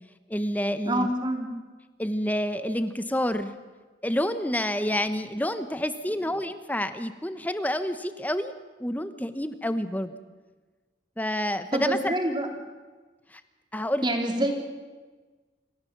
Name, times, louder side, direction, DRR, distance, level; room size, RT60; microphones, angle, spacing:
voice 1, 0.3-1.1 2.0-3.5 4.0-8.5 8.8-10.1 11.2-12.1 13.3-13.4 13.7-14.0, equal, 10° left, 11 dB, 0.9 m, -28 dB
voice 2, 0.9-1.5 11.7-12.5 14.0-14.6, right 1 dB, 25° right, 3 dB, 2.8 m, -26 dB
27.5 x 14.5 x 7.3 m, 1.3 s
head